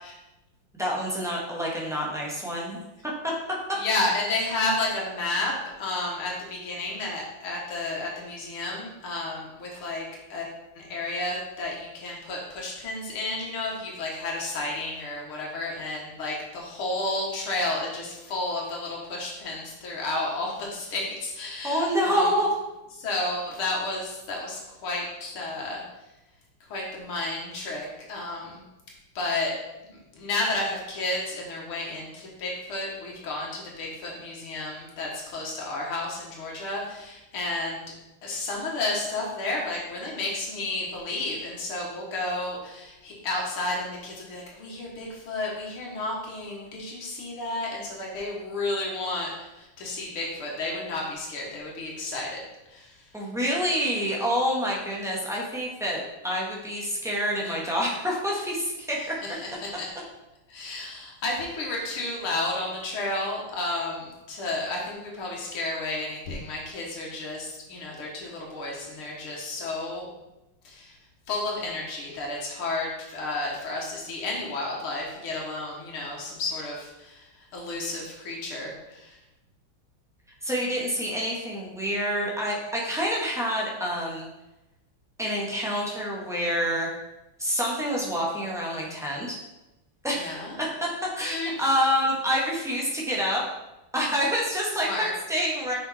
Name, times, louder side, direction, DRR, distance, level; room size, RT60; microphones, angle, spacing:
voice 1, 0.8-3.3 21.6-22.5 53.1-59.2 80.4-84.3 85.2-86.9 87.4-89.4 90.0-90.9 91.1-93.4 93.9-95.7, equal, ahead, -4 dB, 1.3 m, -27 dB
voice 2, 3.8-10.5 10.7-22.3 23.0-25.8 26.7-28.6 29.2-29.5 29.8-37.9 38.2-52.4 52.7-53.0 59.0-59.9 60.5-70.1 70.6-71.0 71.3-79.2 90.1-90.6 91.2-91.5 94.8-95.1, left 2 dB, 90° left, -2 dB, 2.3 m, -32 dB
6.2 x 6.1 x 4.2 m, 0.97 s
omnidirectional pair, 2.3 m